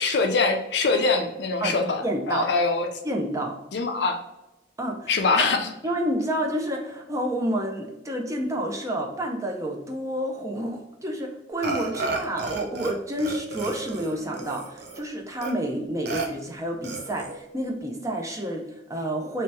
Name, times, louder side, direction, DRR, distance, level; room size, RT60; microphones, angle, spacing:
voice 1, 0.0-2.9 3.7-4.2 5.1-5.7, left 3 dB, 65° left, 5 dB, 0.5 m, -23 dB
voice 2, 2.0-2.5 3.0-3.6 4.8-5.5 5.8-19.4, right 1 dB, 20° right, 1 dB, 0.6 m, -29 dB
Burping eructation, 11.6-12.9 13.2-15.0 15.4-15.5 16.1-16.3 16.8-17.4, right 3 dB, 65° right, 0.7 m, -32 dB
3.1 x 2.8 x 4.6 m, 0.92 s
head